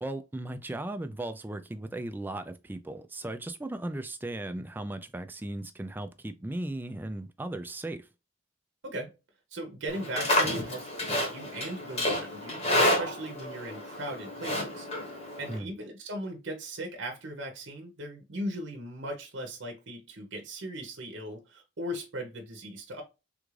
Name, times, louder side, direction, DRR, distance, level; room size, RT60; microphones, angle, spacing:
voice 1, 0.0-8.1 15.5-15.7, right 1 dB, 10° right, 0.3 m, -37 dB
voice 2, 9.5-14.9 15.4-23.0, right 1 dB, 65° right, 0.7 m, -38 dB
Livestock farm animals working animals, 9.9-15.6, left 1 dB, 35° left, 1.0 m, -30 dB
3.5 x 2.4 x 3.1 m
head